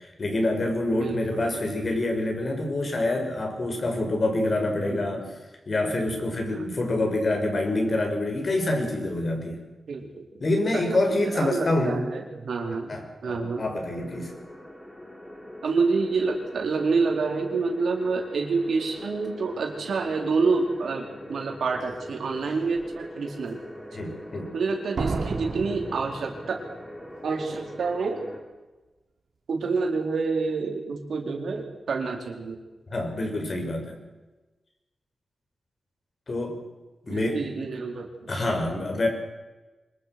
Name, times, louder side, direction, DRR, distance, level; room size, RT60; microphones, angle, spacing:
voice 1, 0.0-5.3 5.7-9.6 10.4-12.0 12.9-14.3 23.9-24.5 32.9-34.0 36.3-36.6 37.0-37.7 38.3-39.1, left 2 dB, 45° left, 3 dB, 6.3 m, -26 dB
voice 2, 0.9-1.9 4.8-5.2 6.5-6.7 9.9-10.4 10.7-13.0 13.2-13.6 15.6-23.6 24.5-26.6 27.2-28.2 29.5-32.6 37.1-38.3, right 4 dB, 85° right, 2 dB, 4.5 m, -28 dB
sound 1, 13.8-28.4, equal, 15° left, 5.2 m, -42 dB
Slam, 21.8-21.9 22.5-22.9 25.0-26.8 27.1-27.2, right 4 dB, 70° right, 3.8 m, -33 dB
25.0 x 22.0 x 6.2 m, 1.2 s
wide cardioid pair, 95°, 0 cm